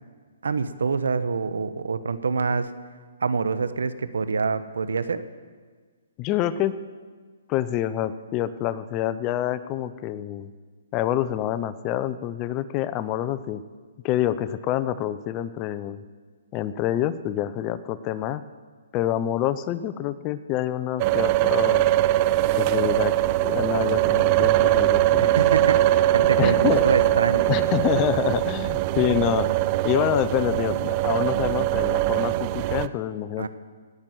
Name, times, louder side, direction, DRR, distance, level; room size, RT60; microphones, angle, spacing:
voice 1, 0.4-2.7 3.2-5.2 25.2-25.8 26.1-27.5 33.4-33.5, right 4 dB, 80° right, 12 dB, 1.0 m, -25 dB
voice 2, 6.2-6.8 7.5-10.5 10.9-13.6 14.0-16.0 16.5-18.5 18.9-21.9 22.6-23.2 23.4-25.3 26.4-26.9 27.5-29.5 29.8-33.5, left 12 dB, 25° left, 14 dB, 0.6 m, -27 dB
sound 1, 21.0-32.9, right 15 dB, 30° right, 0.4 m, -22 dB
18.0 x 6.0 x 9.4 m, 1.5 s
hypercardioid pair, 150°, 0 cm